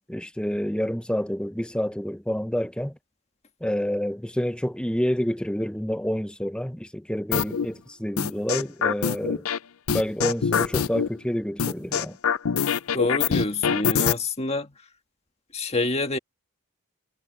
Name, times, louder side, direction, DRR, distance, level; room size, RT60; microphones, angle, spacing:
voice 1, 0.0-2.9 3.6-9.4 9.9-12.2, equal, 5° left, 0.7 m, -28 dB
sound 1, 7.3-7.7 8.2-9.6 9.9-11.1 11.6-14.1, left 7 dB, 75° left, 0.6 m, -24 dB
voice 2, 12.9-14.7 15.5-16.2, left 2 dB, 30° left, 1.7 m, -27 dB
head